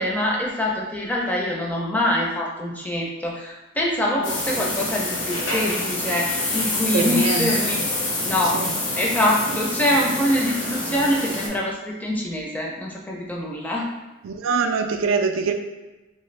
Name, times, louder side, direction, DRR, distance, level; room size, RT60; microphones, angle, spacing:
voice 1, 0.0-7.8 8.2-8.6 9.0-13.9, left 1 dB, 10° left, -3 dB, 0.4 m, -24 dB
sound 1, 4.2-11.5, left 2 dB, 70° left, 0.9 m, -26 dB
voice 2, 6.9-7.7 8.5-8.7 14.2-15.5, right 5 dB, 85° right, 6 dB, 0.3 m, -24 dB
2.7 x 2.5 x 3.1 m, 1.1 s
head